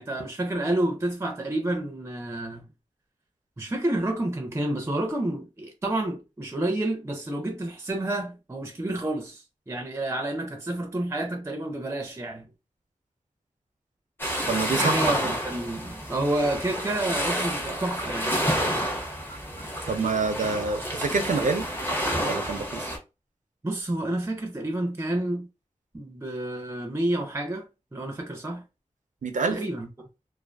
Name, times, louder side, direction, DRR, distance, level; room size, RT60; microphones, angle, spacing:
voice 1, 0.0-2.7 3.6-12.5 14.7-18.5 23.6-25.5 25.9-28.6 29.5-29.9, right 1 dB, 20° right, 0.5 m, -29 dB
sound 1, 14.2-23.0, equal, 15° left, 0.7 m, -29 dB
voice 2, 14.5-15.0 15.2-15.3 19.9-21.7 22.2-22.9 29.2-29.6, right 4 dB, 90° right, 0.5 m, -27 dB
2.4 x 2.3 x 2.2 m
wide cardioid pair, 75°, 13 cm